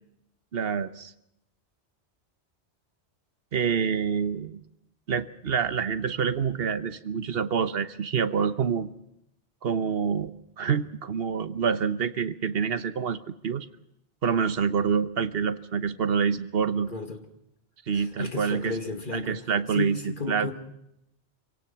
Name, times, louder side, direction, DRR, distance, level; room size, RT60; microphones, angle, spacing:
voice 1, 0.5-1.1 3.5-4.6 5.1-8.9 9.6-13.7 14.2-16.9 17.9-18.7 19.1-20.0 20.3-20.5, right 6 dB, 60° right, 12 dB, 1.2 m, -27 dB
voice 2, 16.7-17.2 17.9-20.5, left 3 dB, 45° left, 5 dB, 2.5 m, -34 dB
26.0 x 17.5 x 6.0 m, 0.79 s
omnidirectional pair, 1.2 m